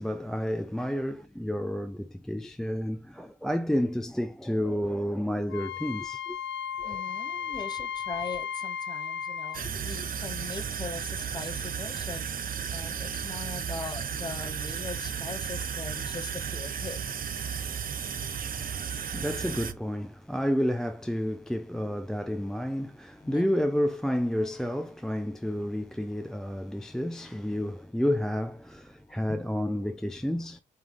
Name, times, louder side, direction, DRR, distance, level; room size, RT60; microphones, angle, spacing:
voice 1, 0.0-6.4 6.8-7.0 18.4-30.6, equal, 5° left, 0.4 m, -30 dB
Wind instrument woodwind instrument, 5.5-9.6, left 8 dB, 65° left, 0.6 m, -35 dB
voice 2, 6.8-12.3 12.7-17.0 23.2-23.5 29.1-29.4, left 4 dB, 20° left, 1.0 m, -40 dB
sound 1, 9.5-19.7, right 7 dB, 45° right, 0.8 m, -34 dB
8.4 x 3.5 x 3.4 m
cardioid pair, 90°, 20 cm